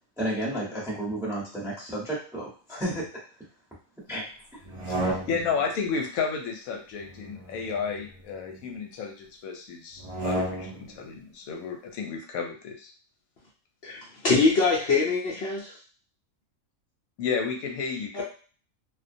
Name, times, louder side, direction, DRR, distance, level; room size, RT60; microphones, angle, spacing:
voice 1, 0.2-3.2 4.1-4.2 4.5-4.6, right 1 dB, 5° right, -7 dB, 0.7 m, -32 dB
sound 1, 4.6-5.7 7.0-8.6 9.9-11.0, right 1 dB, 65° right, 0.4 m, -33 dB
voice 2, 4.9-12.9 17.2-18.2, left 5 dB, 85° left, 2 dB, 1.0 m, -32 dB
voice 3, 13.8-15.7 18.1-18.2, left 4 dB, 60° left, -5 dB, 0.7 m, -24 dB
2.3 x 2.2 x 2.5 m, 0.40 s
omnidirectional pair, 1.4 m